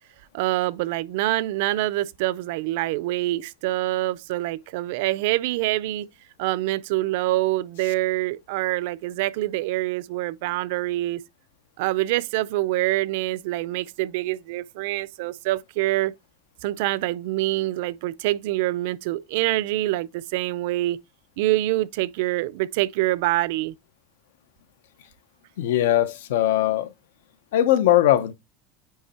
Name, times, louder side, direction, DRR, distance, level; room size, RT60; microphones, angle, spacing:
voice 1, 0.3-6.1 6.4-11.2 11.8-16.1 16.6-21.0 21.4-23.8, right 17 dB, 55° right, 0.4 m, -25 dB
voice 2, 25.6-26.9 27.5-28.3, left 12 dB, 80° left, 0.8 m, -20 dB
9.4 x 3.1 x 4.3 m
supercardioid pair, 175°, 0 cm